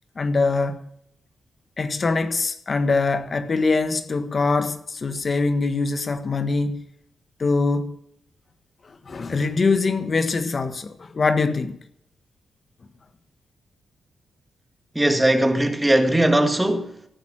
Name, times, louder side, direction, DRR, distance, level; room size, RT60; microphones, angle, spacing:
voice 1, 0.2-0.8 1.8-6.8 7.4-7.9 8.8-11.8, left 3 dB, 40° left, 1.3 m, -23 dB
voice 2, 15.0-17.1, right 1 dB, 10° right, 1.8 m, -19 dB
15.5 x 9.3 x 7.5 m
cardioid pair, 100°, 0 cm